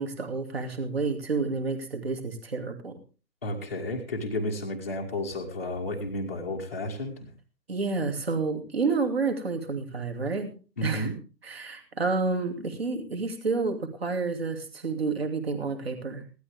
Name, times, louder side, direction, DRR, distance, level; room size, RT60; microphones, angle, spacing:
voice 1, 0.0-3.0 7.7-10.5 10.8-11.1 11.4-16.2, right 4 dB, 35° right, 5 dB, 2.7 m, -29 dB
voice 2, 3.4-7.3 10.8-11.1, left 1 dB, 10° left, -4 dB, 1.1 m, -32 dB
17.0 x 12.5 x 3.5 m, 0.35 s
figure-of-eight pair, 155°, 50 cm